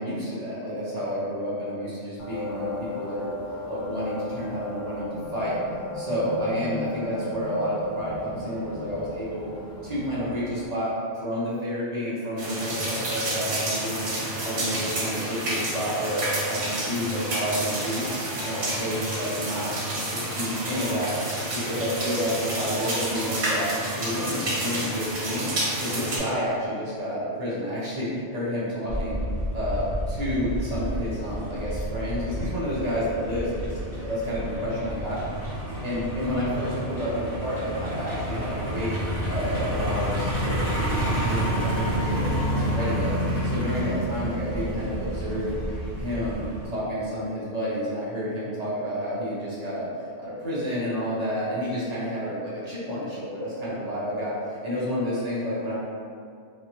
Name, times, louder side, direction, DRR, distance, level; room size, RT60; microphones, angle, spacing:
voice 1, 0.0-3.3 3.7-5.6 5.9-9.5 9.8-14.1 14.4-18.1 18.4-19.7 20.1-21.1 21.5-25.5 25.8-29.2 29.5-35.2 35.8-39.0 39.3-40.6 41.0-43.2 43.4-45.6 46.0-49.9 50.2-55.8, equal, 40° right, -9 dB, 0.8 m, -30 dB
sound 1, 2.2-10.7, left 2 dB, 70° left, 0.9 m, -36 dB
sound 2, 12.4-26.2, right 1 dB, 85° right, 1.1 m, -29 dB
Truck, 28.9-46.7, equal, 40° left, 1.2 m, -29 dB
2.9 x 2.3 x 2.8 m, 2.2 s
omnidirectional pair, 1.2 m